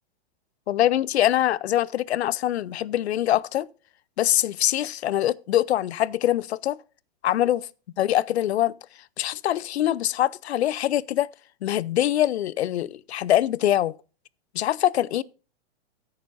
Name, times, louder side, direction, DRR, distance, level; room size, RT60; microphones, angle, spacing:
voice 1, 0.7-3.7 4.2-6.8 7.2-7.7 8.0-8.7 9.2-11.3 11.6-13.9 14.5-15.2, left 12 dB, 85° left, 0.6 m, -23 dB
18.0 x 6.7 x 2.6 m
hypercardioid pair, 155°, 31 cm